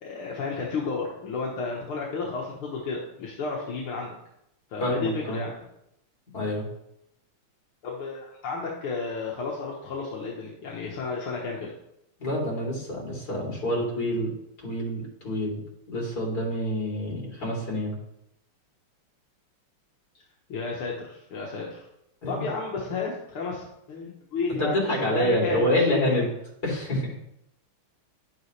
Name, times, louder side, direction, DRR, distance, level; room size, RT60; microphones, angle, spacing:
voice 1, 0.0-4.2 4.7-5.5 7.8-11.7 20.5-21.8 22.3-26.3, left 4 dB, 75° left, -3 dB, 2.1 m, -32 dB
voice 2, 4.8-5.4 6.3-6.6 12.2-14.3 14.6-15.6 15.9-17.9 22.2-22.5 24.6-26.3 26.6-27.1, equal, 45° left, -3 dB, 3.5 m, -27 dB
10.5 x 8.0 x 3.2 m, 0.80 s
omnidirectional pair, 2.4 m